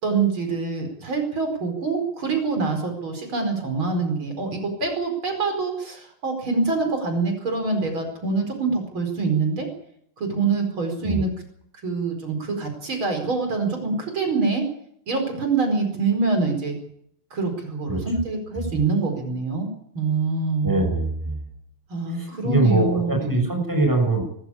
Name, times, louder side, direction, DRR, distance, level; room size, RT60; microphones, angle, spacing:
voice 1, 0.0-9.7 10.2-11.3 11.8-14.6 15.1-16.8 17.3-19.7 19.9-20.7 21.9-23.5, right 4 dB, 75° right, 5 dB, 5.6 m, -25 dB
voice 2, 20.6-21.4 22.1-24.2, right 2 dB, 10° right, 2 dB, 6.5 m, -22 dB
22.5 x 13.5 x 8.6 m, 0.68 s
omnidirectional pair, 2.3 m